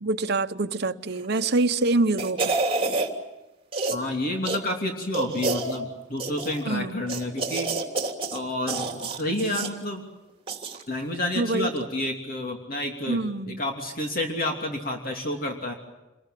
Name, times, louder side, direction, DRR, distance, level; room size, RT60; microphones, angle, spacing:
voice 1, 0.0-2.6 6.6-7.1 11.4-11.7 13.1-13.6, right 2 dB, 55° right, 1.0 m, -25 dB
sound 1, 1.2-1.6 2.0-3.1 3.7-4.1 4.4-4.6 5.1-5.8 6.2-6.6 7.1-8.4 8.7-9.7 10.5-10.8 11.1-11.2, right 3 dB, 30° right, 3.0 m, -28 dB
voice 2, 3.9-7.7 8.3-10.0 10.9-13.2 13.5-15.7, left 1 dB, 50° left, 3.0 m, -29 dB
28.0 x 21.5 x 9.2 m
head